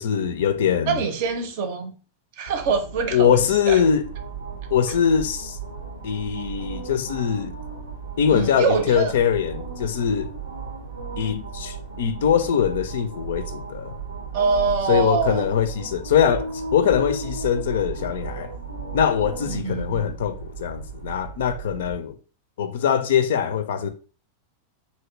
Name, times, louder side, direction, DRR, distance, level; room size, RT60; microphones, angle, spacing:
voice 1, 0.0-1.0 3.1-4.0 4.7-5.6 6.0-7.6 8.2-10.3 11.2-13.9 14.9-18.5 18.9-22.1 22.6-23.9, left 8 dB, 60° left, 0.4 m, -22 dB
voice 2, 0.9-2.0 2.4-3.4 3.7-3.8 8.3-9.1 14.3-15.5 19.5-20.1, right 5 dB, 50° right, 0.6 m, -24 dB
sound 1, 2.5-22.0, right 5 dB, 85° right, 0.7 m, -35 dB
2.9 x 2.7 x 3.0 m
figure-of-eight pair, 90°, 0 cm